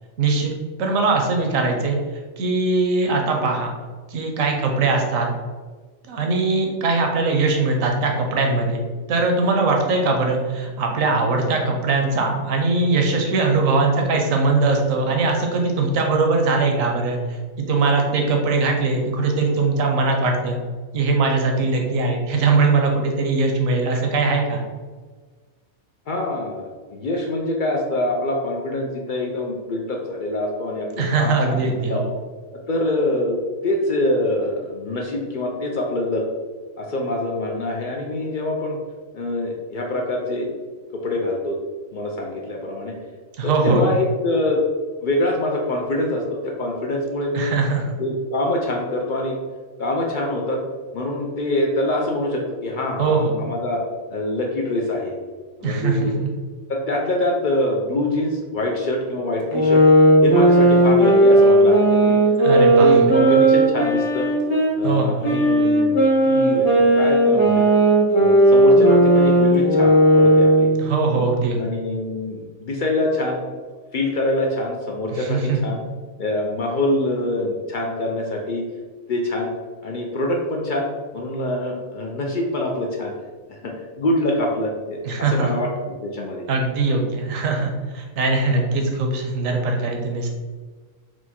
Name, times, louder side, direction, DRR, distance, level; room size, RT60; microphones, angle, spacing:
voice 1, 0.2-0.5 0.8-2.0 2.4-3.7 4.1-5.3 6.1-8.8 9.1-17.4 17.7-20.6 20.9-24.6 31.0-32.1 43.4-43.9 47.3-47.9 53.0-53.3 55.6-56.3 62.4-63.1 64.8-65.2 70.8-71.6 75.1-75.6 85.0-85.5 86.5-90.3, right 3 dB, 75° right, 2 dB, 1.1 m, -21 dB
voice 2, 26.1-32.0 32.5-33.4 33.6-36.2 36.8-38.8 39.1-40.5 40.9-41.6 41.9-42.9 43.4-44.6 45.0-47.6 48.0-49.4 49.8-50.6 50.9-53.8 54.1-55.2 55.6-56.2 56.7-59.8 60.2-62.2 62.5-64.3 64.8-67.7 68.2-70.7 71.5-73.4 73.9-75.8 76.2-78.6 79.1-79.5 79.8-83.1 83.5-86.4, left 1 dB, 65° left, 0 dB, 0.4 m, -25 dB
sound 1, 59.5-64.7 65.2-70.8, right 1 dB, 30° left, 0.9 m, -15 dB
4.6 x 2.2 x 4.2 m, 1.4 s
omnidirectional pair, 1.4 m